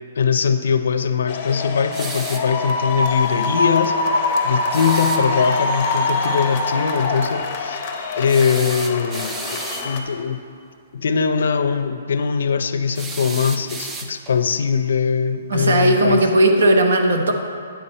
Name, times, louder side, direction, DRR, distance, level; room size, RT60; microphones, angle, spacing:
voice 1, 0.2-4.0 4.4-7.8 8.2-9.6 9.8-10.4 10.9-16.2, left 6 dB, 65° left, 9 dB, 0.5 m, -21 dB
sound 1, 1.3-10.0, left 2 dB, 20° left, 0.6 m, -24 dB
sound 2, 1.9-2.5 4.7-5.3 8.3-9.9 12.9-14.4, right 4 dB, 10° right, 0.3 m, -33 dB
voice 2, 15.5-17.3, right 1 dB, 65° right, 4 dB, 1.0 m, -16 dB
9.2 x 7.0 x 4.2 m, 2.3 s
hypercardioid pair, 180°, 0 cm